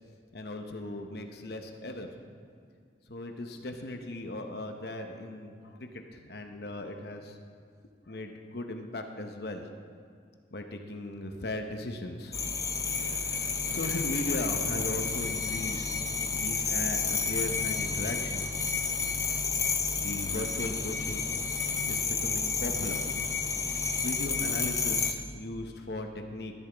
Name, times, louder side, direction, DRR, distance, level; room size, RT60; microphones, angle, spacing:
voice 1, 0.3-2.1 3.1-7.3 8.1-9.6 10.5-12.4 13.0-16.0 16.3-18.5 20.0-21.2 21.6-23.0 23.9-26.6, left 1 dB, 60° left, 5 dB, 0.9 m, -38 dB
sound 1, 12.3-25.1, left 5 dB, 20° left, 0.6 m, -30 dB
13.5 x 12.0 x 3.5 m, 2.2 s
head